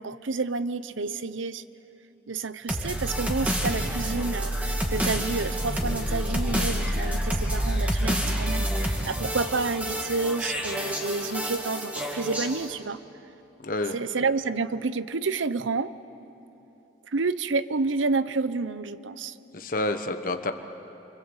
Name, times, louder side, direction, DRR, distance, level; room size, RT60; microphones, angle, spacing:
voice 1, 0.0-1.6 2.3-13.0 13.9-15.9 17.1-19.3, right 4 dB, 85° right, 14 dB, 0.8 m, -29 dB
sound 1, 2.7-12.7, equal, 10° right, 2.4 m, -28 dB
voice 2, 13.6-14.0 19.5-20.5, left 2 dB, 45° left, 7 dB, 1.2 m, -28 dB
29.0 x 25.0 x 8.1 m, 2.9 s
head